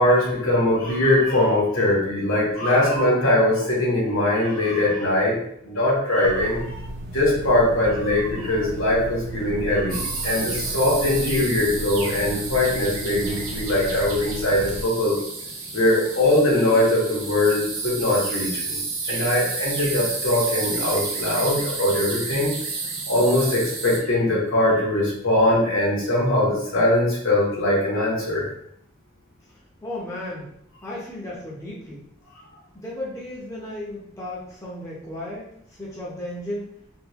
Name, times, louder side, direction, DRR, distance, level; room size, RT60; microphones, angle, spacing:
voice 1, 0.0-5.4 5.6-6.8 7.1-15.2 15.7-18.8 19.1-22.5 23.1-28.5, left 1 dB, 75° left, -5 dB, 1.4 m, -21 dB
sound 1, 6.2-14.8, right 1 dB, 55° right, 0.5 m, -35 dB
sound 2, 9.9-24.0, right 3 dB, 75° right, 1.0 m, -31 dB
voice 2, 29.5-30.5 30.8-32.0 32.7-36.8, left 1 dB, 15° left, -7 dB, 0.7 m, -35 dB
3.5 x 2.5 x 3.0 m, 0.72 s
head